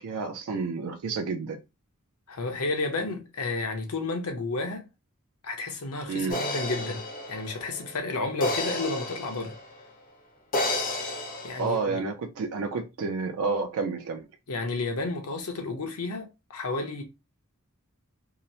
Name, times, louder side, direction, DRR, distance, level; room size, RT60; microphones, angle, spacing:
voice 1, 0.0-1.6 6.1-6.4 11.6-14.3, right 4 dB, 75° right, 0.4 m, -30 dB
voice 2, 2.3-4.9 5.4-7.0 7.3-9.5 11.4-12.0 14.5-17.0, left 3 dB, 85° left, 0.7 m, -31 dB
sound 1, 6.3-9.8 10.5-11.8, left 1 dB, 40° left, 0.5 m, -31 dB
2.8 x 2.0 x 2.7 m
head